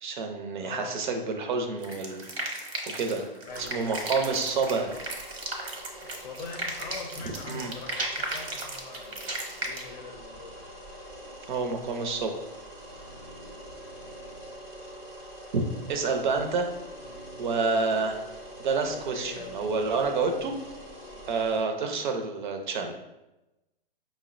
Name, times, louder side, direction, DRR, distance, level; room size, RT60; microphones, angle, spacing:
voice 1, 0.0-2.6 2.9-3.2 3.6-4.9 7.5-7.7 11.5-12.4 15.9-16.7 17.4-18.2 18.6-20.5 21.3-23.0, right 4 dB, 50° right, 4 dB, 0.5 m, -28 dB
voice 2, 0.6-1.0 3.5-4.1 6.0-9.3 9.6-10.7 13.4-13.7 17.1-17.2 18.9-19.7, left 4 dB, 50° left, 4 dB, 0.5 m, -43 dB
sound 1, 1.8-9.8, right 2 dB, 90° right, 0.9 m, -35 dB
sound 2, 3.5-21.6, equal, 5° right, 0.5 m, -45 dB
5.2 x 2.1 x 2.5 m, 0.98 s
hypercardioid pair, 145°, 30 cm